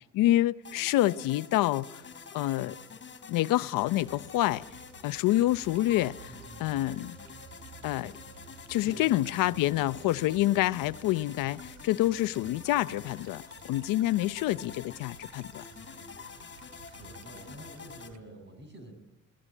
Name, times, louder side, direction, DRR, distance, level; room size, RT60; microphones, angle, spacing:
voice 1, 0.0-1.9 2.3-2.7 3.3-4.6 5.0-6.2 6.6-7.2 7.8-8.1 8.7-15.6, left 15 dB, 85° left, 0.8 m, -27 dB
sound 1, 0.6-18.1, left 6 dB, 35° left, 3.2 m, -47 dB
sound 2, 3.8-18.2, right 7 dB, 65° right, 2.1 m, -54 dB
voice 2, 6.3-6.7 8.8-9.6 15.7-18.9, right 1 dB, 35° right, 7.5 m, -50 dB
22.0 x 18.0 x 9.9 m
cardioid pair, 125°, 32 cm